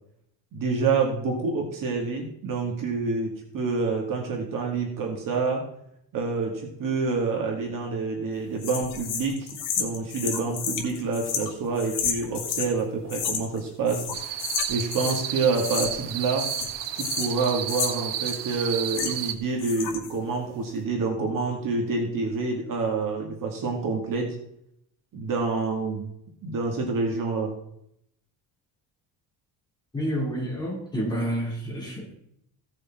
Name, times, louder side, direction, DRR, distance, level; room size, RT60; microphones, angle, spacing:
voice 1, 0.5-5.6 6.1-9.5 9.8-14.0 14.3-14.4 14.7-16.5 16.9-24.4 25.1-26.1 26.4-27.5, right 4 dB, 45° right, 0 dB, 2.3 m, -27 dB
sound 1, 8.6-12.7 13.1-13.6 13.9-15.3 15.5-16.1 16.4-19.3 19.6-20.1, left 7 dB, 70° left, 2.2 m, -32 dB
sound 2, 14.1-19.3, right 11 dB, 70° right, 1.0 m, -32 dB
voice 2, 29.9-32.1, equal, 10° left, -5 dB, 4.0 m, -29 dB
16.5 x 6.9 x 4.4 m, 0.74 s
cardioid pair, 165°, 44 cm